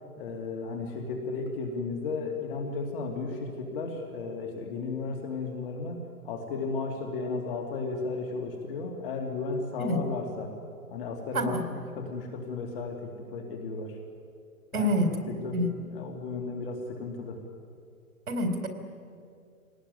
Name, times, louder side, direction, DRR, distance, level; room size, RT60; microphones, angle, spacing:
voice 1, 0.2-10.5 10.9-14.0 14.7-14.9 15.3-17.4, left 3 dB, 40° left, 3 dB, 2.7 m, -34 dB
voice 2, 11.3-11.6 14.7-15.1 15.5-15.7 18.3-18.7, equal, 85° right, 6 dB, 4.3 m, -27 dB
24.5 x 19.0 x 9.5 m, 2.3 s
hypercardioid pair, 150°, 43 cm